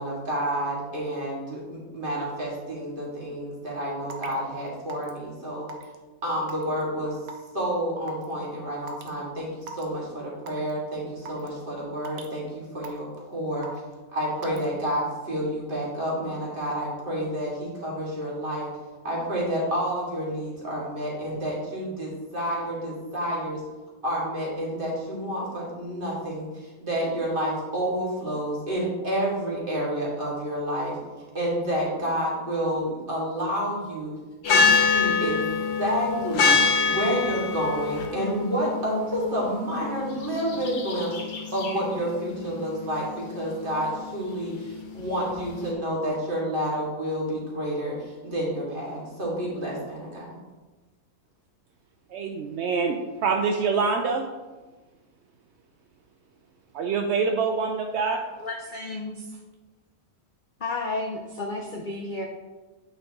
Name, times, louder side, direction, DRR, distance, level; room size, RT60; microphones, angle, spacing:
voice 1, 0.0-5.7 6.2-7.2 7.5-13.1 13.3-13.7 14.1-18.7 19.0-23.6 24.0-31.0 31.3-34.1 34.5-34.6 34.9-35.5 35.8-36.6 36.8-41.1 41.5-50.4, equal, 35° right, -5 dB, 2.2 m, -29 dB
Raindrop / Water tap faucet / Drip, 4.1-4.3 4.9-5.2 5.7-6.0 6.5-6.8 7.3-7.5 8.1-8.2 8.9-9.1 9.6-9.8 10.5-10.7 11.3-11.5 12.0-12.3 12.8-13.2 13.6-13.9 14.4-14.7, right 4 dB, 85° right, 1.3 m, -39 dB
sound 1, 34.4-45.7, left 5 dB, 80° left, 1.5 m, -26 dB
voice 2, 52.1-54.3 56.7-58.2, right 5 dB, 70° right, 4 dB, 0.6 m, -25 dB
voice 3, 58.4-59.3 60.6-62.3, left 2 dB, 55° left, 1 dB, 0.5 m, -32 dB
8.5 x 4.7 x 3.6 m, 1.2 s
omnidirectional pair, 1.6 m